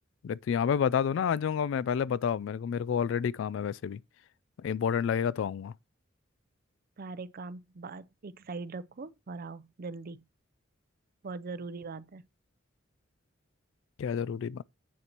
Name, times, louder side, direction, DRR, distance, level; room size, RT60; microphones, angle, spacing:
voice 1, 0.2-4.0 4.6-5.7 14.0-14.6, left 7 dB, 70° left, 0.3 m, -29 dB
voice 2, 7.0-10.2 11.2-12.3, right 3 dB, 50° right, 0.5 m, -41 dB
8.3 x 6.7 x 2.9 m
head